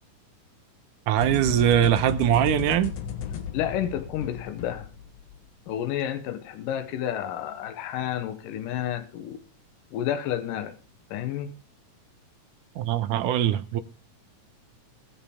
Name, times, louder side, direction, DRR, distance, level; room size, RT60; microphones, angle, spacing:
voice 1, 1.1-2.9 12.8-13.8, right 11 dB, 80° right, 2.3 m, -22 dB
sound 1, 1.2-5.5, left 8 dB, 60° left, 2.2 m, -35 dB
voice 2, 3.5-4.9 5.7-9.4 9.9-10.7 11.1-11.5, left 10 dB, 85° left, 2.7 m, -30 dB
21.0 x 7.2 x 3.5 m
omnidirectional pair, 3.8 m